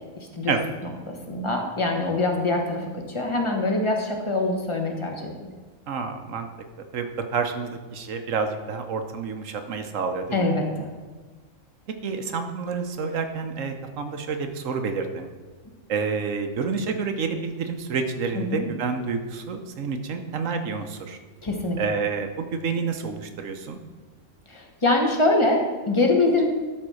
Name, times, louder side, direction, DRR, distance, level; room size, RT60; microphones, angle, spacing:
voice 1, 0.8-5.3 10.3-10.9 18.3-18.7 21.4-21.8 24.5-26.5, left 2 dB, 25° left, 2 dB, 1.2 m, -24 dB
voice 2, 5.9-6.5 6.9-10.5 12.0-15.3 15.9-21.2 21.8-23.8, right 5 dB, 80° right, 6 dB, 1.3 m, -29 dB
12.0 x 4.2 x 6.3 m, 1.4 s
omnidirectional pair, 1.3 m